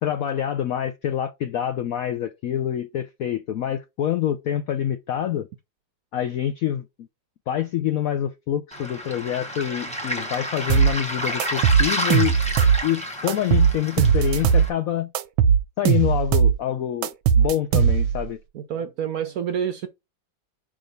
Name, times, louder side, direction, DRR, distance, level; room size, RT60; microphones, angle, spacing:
voice 1, 0.0-5.5 6.1-7.1 7.5-12.4 12.8-15.1 15.8-17.1 17.4-18.4, left 11 dB, 75° left, 0.8 m, -26 dB
Waves surf, 8.7-14.7, equal, 5° left, 1.2 m, -30 dB
sound 1, 10.7-10.9 11.4-12.8 13.3-14.7 15.1-16.6 17.0-18.2, right 7 dB, 85° right, 1.4 m, -18 dB
voice 2, 18.5-19.9, right 8 dB, 70° right, 0.9 m, -28 dB
5.2 x 3.7 x 5.2 m
omnidirectional pair, 2.1 m